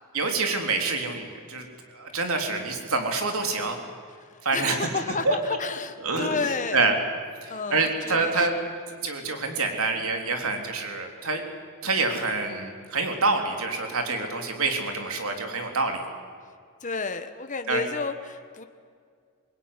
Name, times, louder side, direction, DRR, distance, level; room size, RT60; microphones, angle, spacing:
voice 1, 0.1-1.7 1.9-3.8 4.4-4.9 5.2-5.4 6.0-6.4 6.7-7.0 7.4-8.5 9.0-11.4 11.8-16.0 17.7-17.8, right 3 dB, 70° right, 4 dB, 3.5 m, -26 dB
voice 2, 4.5-6.8 7.5-8.5 16.8-18.6, left 4 dB, 35° left, 8 dB, 1.4 m, -31 dB
24.0 x 21.0 x 9.8 m, 2.1 s
head